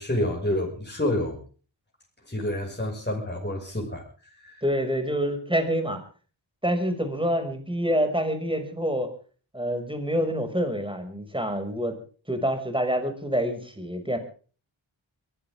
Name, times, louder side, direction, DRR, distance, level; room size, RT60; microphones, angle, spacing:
voice 1, 0.0-1.4 2.3-4.0 4.4-4.6, left 1 dB, 20° left, 0 dB, 6.4 m, -28 dB
voice 2, 4.6-6.0 6.6-9.1 9.5-12.0 12.3-14.2, equal, 10° right, 7 dB, 6.3 m, -27 dB
23.5 x 16.5 x 3.7 m, 0.41 s
wide cardioid pair, 50°, 46 cm